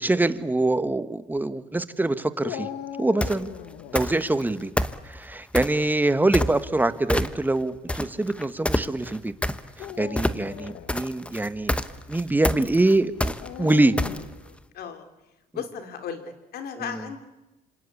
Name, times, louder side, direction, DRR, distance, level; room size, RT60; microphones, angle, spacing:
voice 1, 0.0-2.7 3.0-3.5 3.9-4.7 5.0-9.3 10.0-11.8 12.1-14.0 16.8-17.0, right 2 dB, 10° right, 12 dB, 1.4 m, -24 dB
Dog, 2.4-4.1 6.2-6.7 7.4-7.5 9.7-10.9 13.4-14.4, left 11 dB, 90° left, 1.6 m, -38 dB
sound 1, 3.2-3.5 4.0-4.4 4.8-5.8 6.3-6.8 7.1-7.6 7.9-14.5, left 1 dB, 5° left, 1.1 m, -27 dB
voice 2, 14.1-15.0 15.5-17.2, left 7 dB, 65° left, 7 dB, 3.2 m, -37 dB
27.0 x 26.0 x 8.6 m, 1.0 s
cardioid pair, 110°, 17 cm